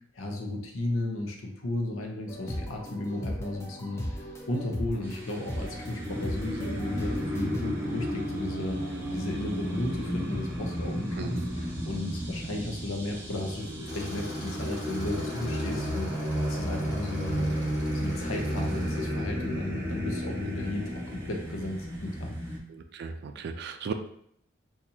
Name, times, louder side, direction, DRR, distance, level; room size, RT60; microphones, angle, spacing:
voice 1, 0.1-17.5 17.9-22.3, left 1 dB, 80° left, 2 dB, 0.7 m, -34 dB
sound 1, 2.3-7.6, equal, 15° left, 0.5 m, -37 dB
sound 2, 5.0-22.6, equal, 10° right, 0.8 m, -33 dB
voice 2, 11.2-11.5 22.7-23.9, right 5 dB, 55° right, 7 dB, 0.3 m, -36 dB
Tools, 13.9-19.2, equal, 35° left, 1.1 m, -44 dB
2.8 x 2.4 x 4.0 m, 0.69 s
head